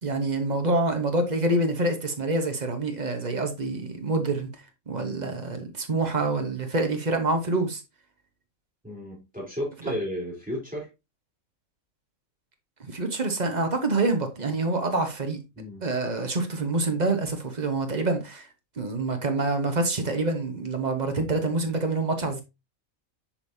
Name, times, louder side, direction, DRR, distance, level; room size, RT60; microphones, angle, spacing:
voice 1, 0.0-4.5 4.9-7.8 12.8-15.4 15.8-18.5 18.8-22.4, right 2 dB, 35° right, 1.1 m, -26 dB
voice 2, 8.8-10.9 15.6-15.9, left 1 dB, 5° right, 3.5 m, -33 dB
7.2 x 5.2 x 2.7 m
omnidirectional pair, 1.5 m